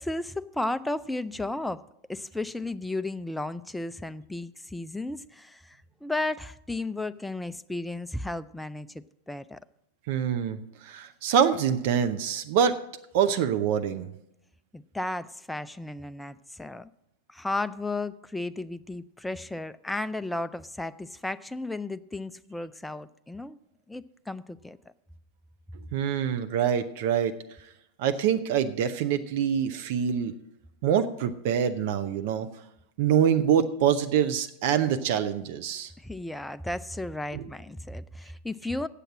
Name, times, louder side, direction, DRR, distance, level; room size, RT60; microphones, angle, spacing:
voice 1, 0.0-1.8 2.1-9.6 14.7-16.9 17.3-23.6 23.9-24.8 36.0-38.9, left 2 dB, 5° left, 13 dB, 0.3 m, -34 dB
voice 2, 10.1-12.8 13.1-14.1 25.9-27.4 28.0-30.3 30.8-32.5 33.0-35.9 37.3-37.4, right 8 dB, 50° right, 10 dB, 0.5 m, -25 dB
8.2 x 7.8 x 7.4 m, 0.82 s
figure-of-eight pair, 90°, 0 cm